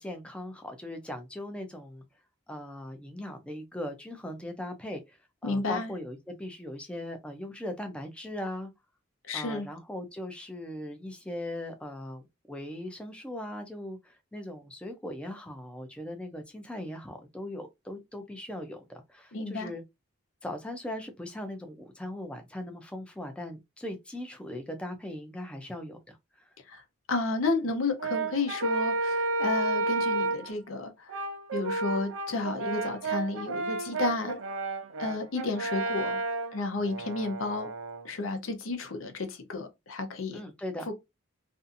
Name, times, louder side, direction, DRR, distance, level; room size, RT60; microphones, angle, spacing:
voice 1, 0.0-2.0 2.5-5.2 5.4-8.7 9.3-19.8 20.4-26.5 40.3-40.8, left 1 dB, 5° left, 0.4 m, -39 dB
voice 2, 5.4-5.9 9.3-9.7 19.3-19.7 26.7-26.8 27.1-31.2 31.5-34.4 35.0-36.2 36.5-37.7 38.0-40.4 40.9-41.0, left 3 dB, 85° left, 0.7 m, -32 dB
Brass instrument, 28.0-30.5 31.1-38.1, right 3 dB, 85° right, 0.6 m, -31 dB
2.6 x 2.4 x 2.5 m
head